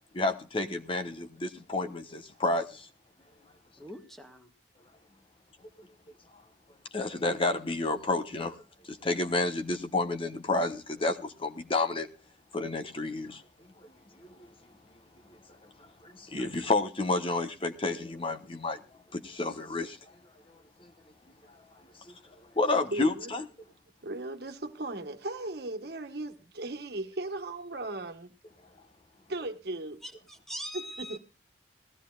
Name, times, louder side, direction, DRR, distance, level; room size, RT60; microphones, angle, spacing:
voice 1, 0.1-2.9 5.8-5.9 6.9-8.6 8.9-12.1 12.5-13.4 14.4-14.5 16.0-18.8 19.1-20.1 22.5-23.4, left 2 dB, 30° left, 1.2 m, -30 dB
voice 2, 3.8-4.5 30.0-31.2, equal, ahead, 1.8 m, -42 dB
voice 3, 22.9-23.3 24.0-28.3 29.3-30.0 30.7-31.2, right 2 dB, 65° right, 1.5 m, -37 dB
19.5 x 15.0 x 2.4 m
head